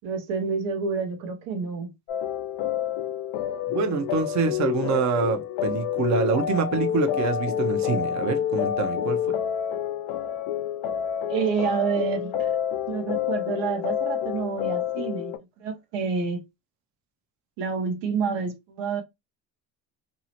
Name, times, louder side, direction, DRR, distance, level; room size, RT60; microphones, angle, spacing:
voice 1, 0.0-1.9 11.3-12.5 12.9-16.4 17.6-19.0, right 5 dB, 85° right, 0.8 m, -28 dB
sound 1, 2.1-15.4, left 10 dB, 85° left, 0.5 m, -28 dB
voice 2, 3.7-9.4, right 5 dB, 45° right, 0.6 m, -26 dB
2.7 x 2.0 x 2.8 m
supercardioid pair, 80°, 42 cm